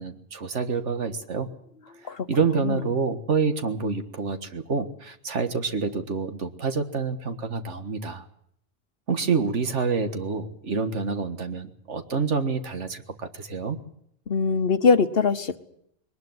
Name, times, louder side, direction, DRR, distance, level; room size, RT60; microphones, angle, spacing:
voice 1, 0.0-1.5 2.3-8.2 9.1-13.8, right 5 dB, 80° right, 8 dB, 1.9 m, -27 dB
voice 2, 2.1-3.0 14.3-15.6, left 5 dB, 55° left, 11 dB, 1.2 m, -23 dB
21.0 x 19.5 x 7.9 m, 0.71 s
omnidirectional pair, 1.2 m